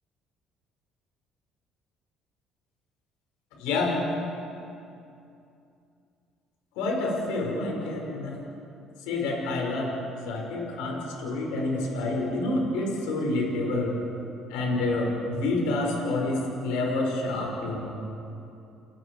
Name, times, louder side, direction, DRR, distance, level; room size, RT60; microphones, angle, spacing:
voice 1, 3.6-4.0 6.8-8.4 9.0-9.9 10.2-13.9 14.5-18.0, left 2 dB, 80° left, -1 dB, 5.8 m, -28 dB
30.0 x 19.5 x 4.9 m, 2.7 s
supercardioid pair, 70°, 0 cm